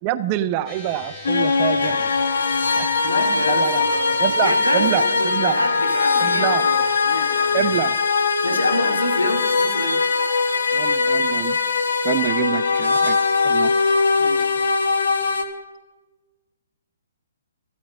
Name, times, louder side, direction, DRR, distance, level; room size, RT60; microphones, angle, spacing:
voice 1, 0.0-2.1 2.8-2.9 3.5-3.8 4.2-5.5 6.2-6.7 7.5-8.0 10.7-11.6 12.0-13.2 13.4-13.7, right 13 dB, 30° right, 14 dB, 0.6 m, -26 dB
sound 1, 0.7-13.2, left 3 dB, 25° left, 3.1 m, -43 dB
sound 2, 1.2-15.4, left 4 dB, 65° left, 1.4 m, -21 dB
voice 2, 3.0-7.8 8.4-10.0 14.2-14.5, left 1 dB, 85° left, 4 dB, 2.3 m, -27 dB
13.5 x 8.4 x 6.3 m, 1.2 s
figure-of-eight pair, 125°, 0 cm